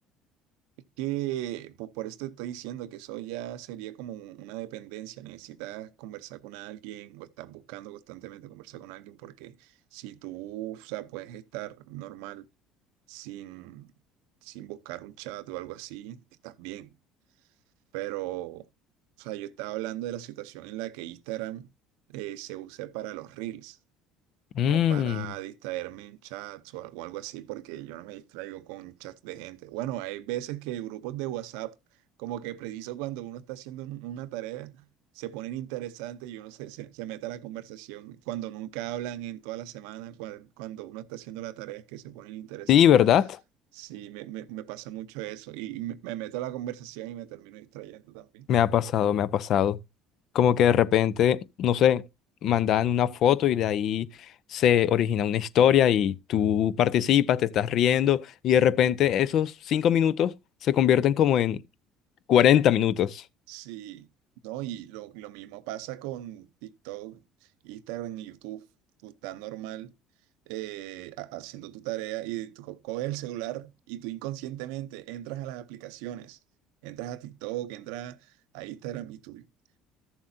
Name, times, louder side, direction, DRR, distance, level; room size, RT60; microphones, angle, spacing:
voice 1, 1.0-12.5 13.1-13.9 14.4-16.9 17.9-18.7 19.2-21.7 22.1-23.8 24.6-31.7 32.2-34.9 35.1-42.9 43.7-48.5 63.5-64.1 64.4-68.7 69.0-69.9 70.5-76.4 76.8-79.5, right 14 dB, 80° right, 0.6 m, -38 dB
voice 2, 24.5-25.3 42.7-43.4 48.5-49.8 50.3-52.1 52.4-54.1 54.5-60.3 60.6-61.6 62.3-63.2, left 10 dB, 60° left, 0.6 m, -22 dB
14.0 x 7.2 x 2.6 m
supercardioid pair, 80°, 0 cm